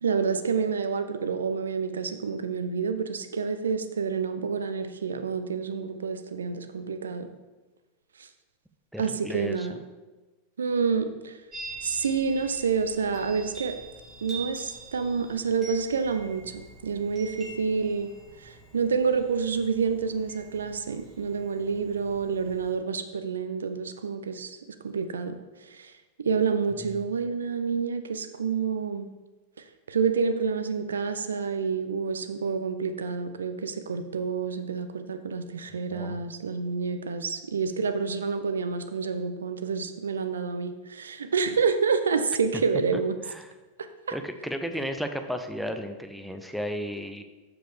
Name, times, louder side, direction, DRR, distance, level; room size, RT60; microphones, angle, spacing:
voice 1, 0.0-7.3 8.2-8.3 9.0-9.8 10.6-11.4 11.8-13.7 14.2-18.1 18.4-24.6 24.8-25.4 25.7-25.9 26.2-29.1 29.9-43.2 44.1-44.2, right 5 dB, 70° right, 9 dB, 0.5 m, -28 dB
voice 2, 8.9-9.7 26.7-26.9 35.9-36.2 42.9-43.5 44.1-47.2, equal, ahead, 6 dB, 0.6 m, -34 dB
Chime, 11.5-22.7, right 3 dB, 25° right, 2.6 m, -45 dB
7.5 x 6.7 x 3.5 m, 1.2 s
figure-of-eight pair, 90°, 0 cm